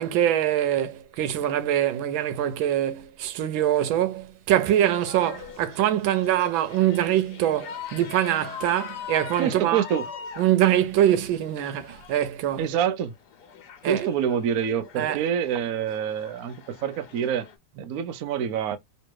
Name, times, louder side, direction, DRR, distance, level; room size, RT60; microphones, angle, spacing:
voice 1, 0.0-9.8 10.4-12.7 13.8-14.1 15.0-15.2, right 11 dB, 90° right, 1.5 m, -24 dB
sound 1, 4.5-12.2 13.0-17.6, left 7 dB, 60° left, 1.4 m, -42 dB
voice 2, 9.4-10.0 12.6-13.1 13.9-17.5 17.8-18.8, right 8 dB, 60° right, 0.9 m, -26 dB
3.2 x 3.1 x 4.6 m
omnidirectional pair, 2.1 m